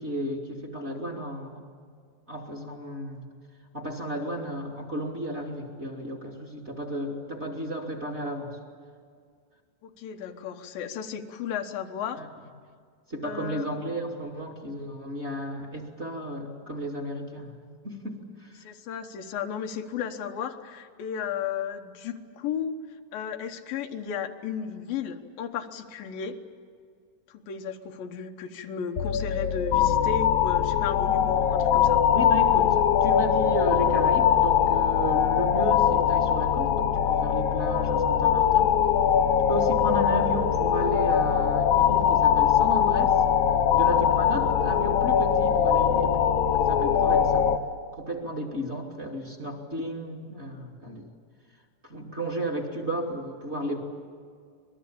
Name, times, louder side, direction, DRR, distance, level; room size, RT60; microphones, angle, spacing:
voice 1, 0.0-1.6 2.3-3.2 3.7-8.5 12.2-12.3 13.1-17.6 17.8-18.6 32.1-38.7 39.5-43.2 43.7-46.1 46.5-47.5 47.9-51.0 51.8-53.8, right 1 dB, 20° right, 1 dB, 2.4 m, -33 dB
voice 2, 9.8-12.2 13.2-13.7 18.6-22.8 23.1-26.4 27.3-32.0, left 7 dB, 85° left, 5 dB, 3.1 m, -34 dB
sound 1, 29.0-47.6, left 9 dB, 65° left, 2.2 m, -22 dB
26.0 x 20.5 x 8.6 m, 2.1 s
omnidirectional pair, 4.0 m